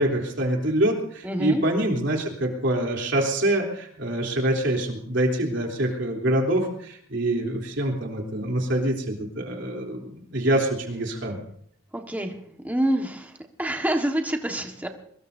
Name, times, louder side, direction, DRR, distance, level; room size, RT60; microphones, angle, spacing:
voice 1, 0.0-11.4, right 1 dB, 60° right, 1 dB, 3.4 m, -25 dB
voice 2, 1.2-1.6 11.9-12.3 12.6-13.3 13.6-14.9, right 1 dB, 10° right, 3 dB, 1.6 m, -26 dB
23.0 x 20.5 x 2.7 m, 0.66 s
head